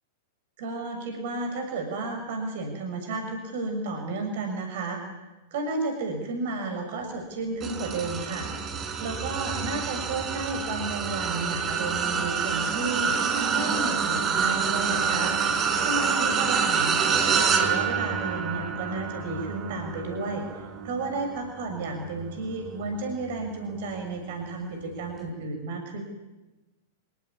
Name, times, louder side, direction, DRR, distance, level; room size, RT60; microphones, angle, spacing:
voice 1, 0.6-5.0 5.5-8.5 9.0-13.2 13.5-15.4 15.8-26.0, right 3 dB, 55° right, 5 dB, 6.6 m, -32 dB
sound 1, 7.6-23.1 23.6-23.9 25.1-25.2, right 6 dB, 25° right, 4.5 m, -27 dB
27.0 x 18.5 x 9.8 m, 1.1 s
figure-of-eight pair, 95°, 0 cm